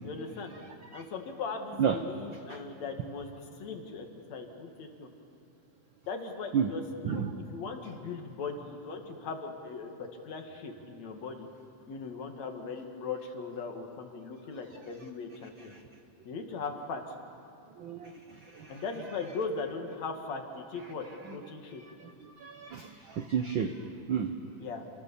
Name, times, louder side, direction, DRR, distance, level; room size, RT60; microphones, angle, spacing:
voice 1, 0.0-0.5 0.9-5.1 6.1-11.5 11.9-15.8 16.2-17.1 18.7-21.8 24.6-24.8, left 4 dB, 60° left, 4 dB, 3.0 m, -39 dB
voice 2, 17.8-18.8 21.3-21.4 22.0-24.3, right 7 dB, 85° right, 6 dB, 1.0 m, -32 dB
28.5 x 26.0 x 7.1 m, 2.8 s
omnidirectional pair, 3.6 m